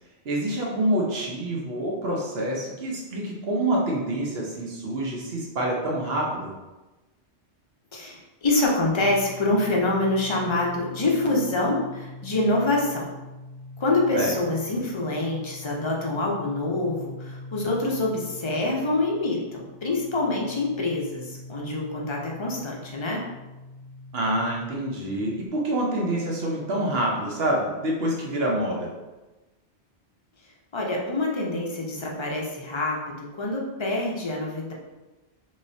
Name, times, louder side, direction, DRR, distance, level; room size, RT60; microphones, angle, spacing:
voice 1, 0.3-6.5 14.1-14.3 24.1-28.9, right 1 dB, 65° right, -2 dB, 1.0 m, -27 dB
voice 2, 7.9-13.0 13.8-23.2 30.7-34.7, left 2 dB, 35° left, -2 dB, 0.5 m, -26 dB
sound 1, 9.0-25.5, left 2 dB, 90° left, 0.9 m, -43 dB
3.7 x 3.2 x 2.6 m, 1.1 s
omnidirectional pair, 1.1 m